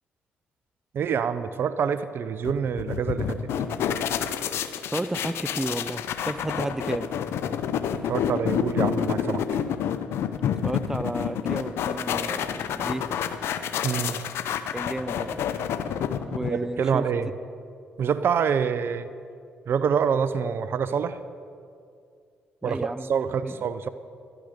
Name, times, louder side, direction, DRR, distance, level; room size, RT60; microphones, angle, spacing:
voice 1, 0.9-3.4 7.9-9.4 13.8-14.2 16.4-17.3 18.0-19.1 19.7-21.2 22.6-23.9, right 7 dB, 60° right, 13 dB, 0.5 m, -26 dB
sound 1, 2.5-16.8, left 8 dB, 75° left, 0.6 m, -29 dB
voice 2, 4.9-7.1 10.4-13.1 14.7-15.4 15.8-15.9 16.3-17.1 22.6-23.6, right 1 dB, 10° right, 14 dB, 0.5 m, -32 dB
12.0 x 12.0 x 5.0 m, 2.4 s
supercardioid pair, 55°, 4 cm